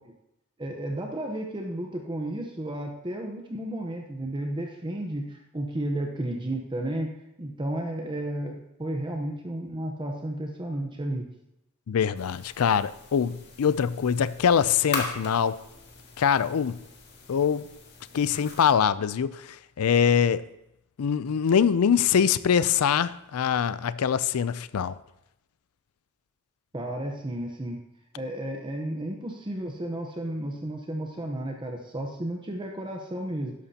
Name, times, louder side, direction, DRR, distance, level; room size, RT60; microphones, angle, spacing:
voice 1, 0.6-7.1 7.4-11.2 26.7-27.8 28.2-33.5, right 1 dB, 20° right, 0.9 m, -33 dB
voice 2, 11.9-15.6 16.2-16.8 17.3-17.7 18.1-20.4 21.0-25.0, left 7 dB, 85° left, 0.4 m, -23 dB
sound 1, 12.1-18.7, left 4 dB, 50° left, 1.9 m, -40 dB
13.0 x 11.0 x 2.8 m
head